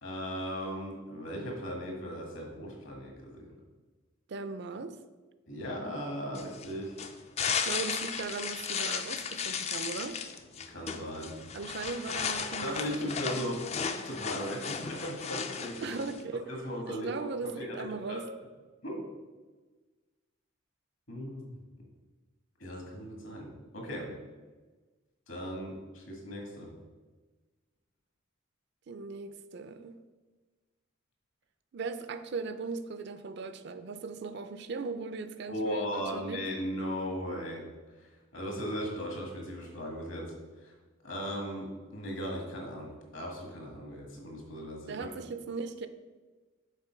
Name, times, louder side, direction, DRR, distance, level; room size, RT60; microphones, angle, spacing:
voice 1, 0.0-3.5 5.5-6.9 7.4-7.7 10.7-11.4 12.6-13.6 14.0-15.9 16.5-17.2 17.4-18.2 18.8-19.0 21.1-21.6 22.6-24.1 25.3-26.7 35.5-37.6 37.9-40.7 41.0-45.1, equal, 65° left, 0 dB, 1.7 m, -37 dB
voice 2, 4.3-5.0 7.6-10.2 11.5-13.5 15.8-16.5 16.9-18.3 28.9-30.0 31.7-36.4 44.9-45.9, right 4 dB, 55° right, 11 dB, 0.4 m, -38 dB
sound 1, 6.3-16.2, left 6 dB, 30° left, 0.3 m, -35 dB
6.7 x 4.4 x 4.6 m, 1.3 s
head